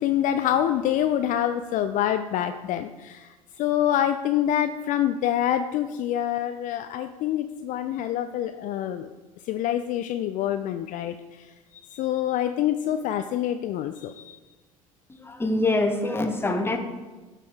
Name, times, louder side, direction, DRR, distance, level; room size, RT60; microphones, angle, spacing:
voice 1, 0.0-9.1 9.5-11.4 11.7-14.4, left 11 dB, 45° left, 8 dB, 0.4 m, -26 dB
voice 2, 15.1-16.8, left 2 dB, 15° left, 5 dB, 1.0 m, -25 dB
12.5 x 4.2 x 3.5 m, 1.3 s
hypercardioid pair, 70°, 18 cm